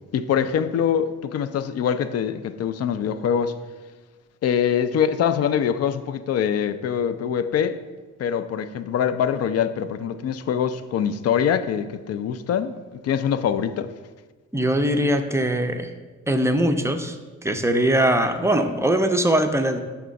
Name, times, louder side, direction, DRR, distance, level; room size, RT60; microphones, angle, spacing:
voice 1, 0.1-3.6 4.4-7.8 8.2-12.8 13.0-13.9, left 8 dB, 55° left, 0.4 m, -24 dB
voice 2, 14.5-15.9 16.3-17.2 17.4-19.8, right 1 dB, 10° right, 0.4 m, -21 dB
5.8 x 3.6 x 5.2 m
cardioid pair, 90°, 30 cm